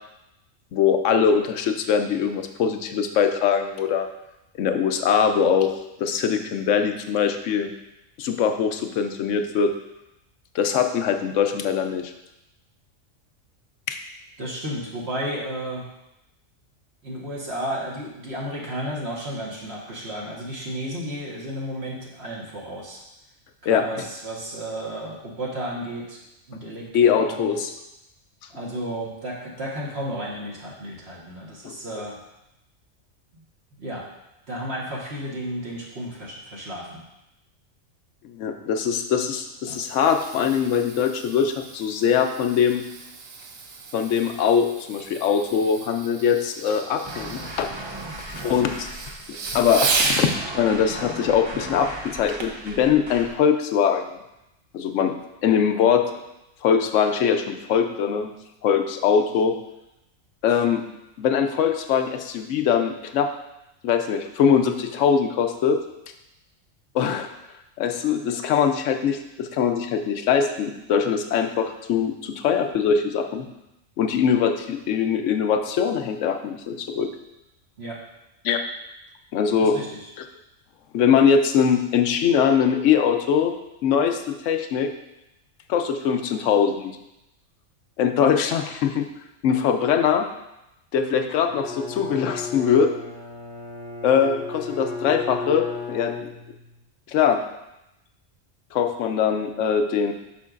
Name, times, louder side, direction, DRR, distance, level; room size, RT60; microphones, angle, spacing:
voice 1, 0.7-4.1 4.6-5.7 6.0-7.7 8.2-9.7 10.5-12.1 13.9-14.0 23.7-23.8 26.9-27.7 31.6-31.8 38.2-42.8 43.9-47.7 48.4-48.9 49.3-54.2 54.7-56.0 56.6-58.3 58.6-59.6 60.4-60.8 61.2-63.3 63.8-65.8 66.9-67.3 67.8-73.5 74.0-77.1 78.4-78.6 79.3-79.8 80.9-83.5 83.8-84.9 85.7-87.0 88.0-89.1 89.4-90.3 90.9-92.9 94.0-96.3 97.1-97.4 98.7-100.1, left 7 dB, 70° left, 6 dB, 0.9 m, -22 dB
voice 2, 14.4-15.9 17.0-23.0 23.6-26.2 26.5-27.7 28.5-32.2 33.8-34.0 34.5-37.0 39.7-39.8 77.8-78.0 79.6-80.1, right 1 dB, 55° right, -4 dB, 1.5 m, -33 dB
Fireworks, 39.4-50.4 52.4-52.7 53.3-53.4, right 4 dB, 80° right, 1.1 m, -33 dB
sound 1, 47.1-53.4, right 2 dB, 25° right, 0.6 m, -37 dB
Bowed string instrument, 91.4-96.8, left 4 dB, 35° left, 0.6 m, -35 dB
8.3 x 6.0 x 2.5 m, 0.91 s
omnidirectional pair, 1.3 m